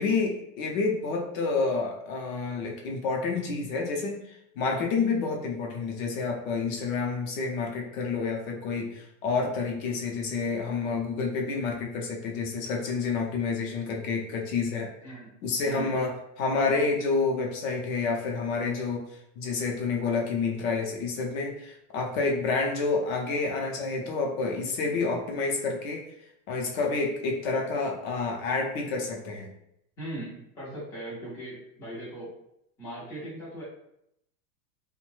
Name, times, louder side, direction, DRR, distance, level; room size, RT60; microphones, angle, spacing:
voice 1, 0.0-14.9 15.4-19.0 19.4-26.0 26.5-29.5, left 4 dB, 55° left, 1 dB, 0.7 m, -29 dB
voice 2, 15.0-15.3 15.6-15.9 30.0-32.3 32.8-33.6, right 1 dB, 5° left, -9 dB, 0.4 m, -39 dB
2.5 x 2.2 x 3.1 m, 0.78 s
supercardioid pair, 150°, 49 cm